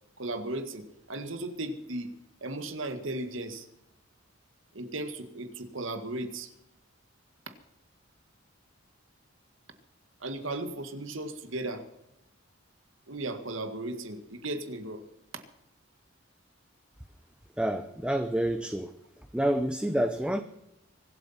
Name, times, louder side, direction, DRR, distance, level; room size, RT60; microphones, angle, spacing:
voice 1, 0.2-2.1 2.4-3.7 4.7-6.5 10.2-11.9 13.1-15.0 15.3-15.4, right 2 dB, 70° right, 9 dB, 1.9 m, -36 dB
voice 2, 17.6-19.0 19.3-20.4, right 1 dB, 5° right, 9 dB, 0.7 m, -28 dB
24.5 x 8.3 x 5.8 m, 0.86 s
head